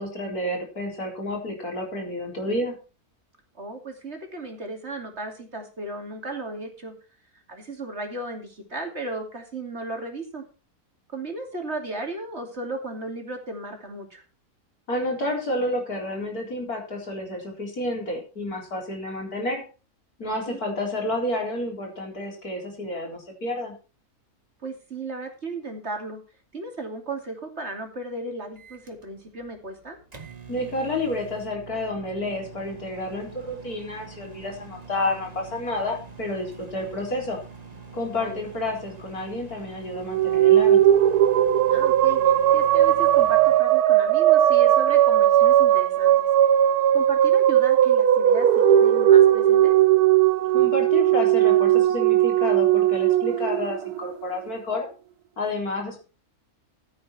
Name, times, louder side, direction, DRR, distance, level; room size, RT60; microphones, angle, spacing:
voice 1, 0.0-2.7 14.9-19.6 20.2-23.8 30.5-37.4 37.9-40.8 50.5-54.9 55.4-56.0, left 1 dB, 75° left, 1 dB, 4.3 m, -30 dB
voice 2, 3.6-6.9 7.5-10.4 11.1-14.2 20.2-20.6 24.6-26.2 26.5-30.0 38.1-38.4 41.7-46.3 46.9-49.8 55.8-56.0, right 2 dB, 45° right, 3 dB, 3.0 m, -35 dB
Microwave oven, 28.6-43.6, right 5 dB, 25° right, 1.7 m, -45 dB
sound 1, 40.0-54.5, right 11 dB, 90° right, 1.3 m, -18 dB
14.5 x 8.5 x 4.4 m, 0.34 s
omnidirectional pair, 1.6 m